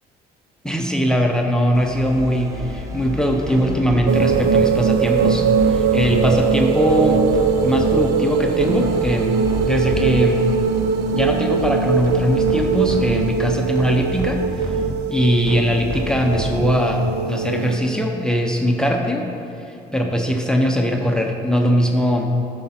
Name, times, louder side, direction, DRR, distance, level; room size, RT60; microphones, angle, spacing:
voice 1, 0.6-7.2 7.6-10.5 11.1-14.8 15.1-19.2 19.7-22.3, equal, 5° left, 2 dB, 0.7 m, -21 dB
sound 1, 1.7-17.2, equal, 20° right, 0.9 m, -30 dB
sound 2, 4.1-17.8, right 5 dB, 90° right, 0.5 m, -21 dB
10.5 x 6.5 x 4.3 m, 2.9 s
cardioid pair, 110°, 17 cm